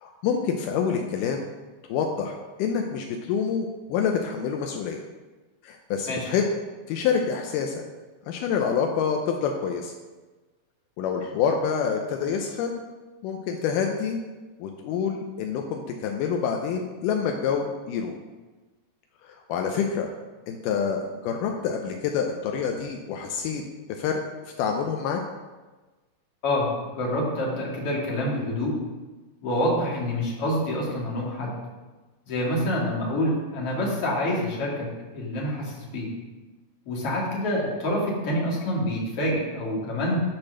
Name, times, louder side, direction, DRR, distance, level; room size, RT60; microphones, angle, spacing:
voice 1, 0.0-1.5 1.9-5.0 5.6-6.5 6.9-7.8 8.3-9.9 11.0-12.8 13.2-14.2 14.6-18.2 19.2-20.1 20.5-23.6 24.0-24.2 24.6-25.2, left 6 dB, 85° left, 3 dB, 2.2 m, -27 dB
voice 2, 26.4-28.8 29.4-31.6 32.3-36.1 36.9-40.2, left 1 dB, 50° left, -4 dB, 2.7 m, -27 dB
10.5 x 4.4 x 6.3 m, 1.2 s
omnidirectional pair, 3.8 m